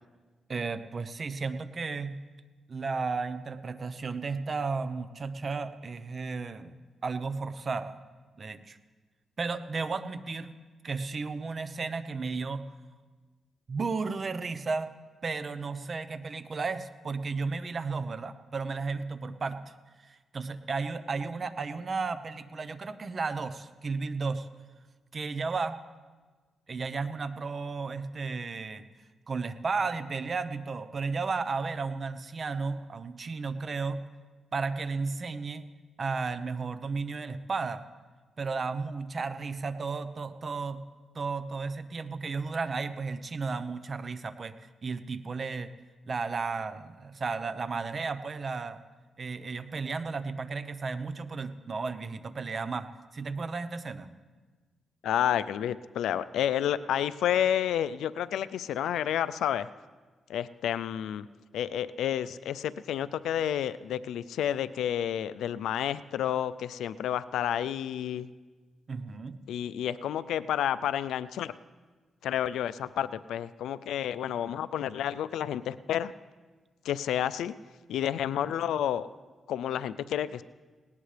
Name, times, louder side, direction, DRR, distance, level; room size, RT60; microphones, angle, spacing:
voice 1, 0.5-2.2 2.7-8.0 8.4-8.8 9.4-10.5 10.8-12.7 13.7-14.9 15.2-19.7 20.0-24.5 25.1-25.8 26.7-28.9 29.3-34.0 34.5-35.6 36.0-37.8 38.4-40.8 41.1-44.5 44.8-45.7 46.1-48.8 49.2-54.1 68.9-69.4, right 4 dB, 45° right, 12 dB, 0.9 m, -34 dB
voice 2, 55.0-59.7 60.3-61.3 61.5-68.3 69.5-71.5 72.2-76.1 76.8-77.5 77.9-79.1 79.5-80.4, left 10 dB, 90° left, 15 dB, 0.4 m, -30 dB
19.0 x 18.5 x 3.4 m, 1.4 s
cardioid pair, 75°, 0 cm